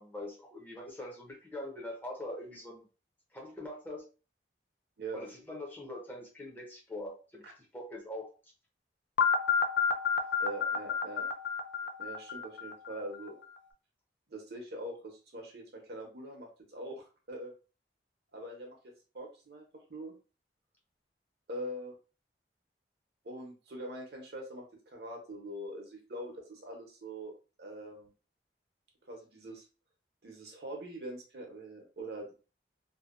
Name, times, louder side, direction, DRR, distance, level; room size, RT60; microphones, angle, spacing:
voice 1, 0.0-2.8 3.3-4.0 5.1-8.5, left 1 dB, 10° left, -1 dB, 0.5 m, -43 dB
sound 1, 9.2-13.2, left 6 dB, 80° left, 0.3 m, -30 dB
voice 2, 10.4-11.3 12.0-13.4 14.3-17.5 18.3-20.1 21.5-22.0 23.2-27.3 27.6-28.1 29.1-29.6 30.2-32.3, right 1 dB, 65° right, 1 dB, 0.7 m, -43 dB
2.6 x 2.1 x 2.4 m, 0.34 s
head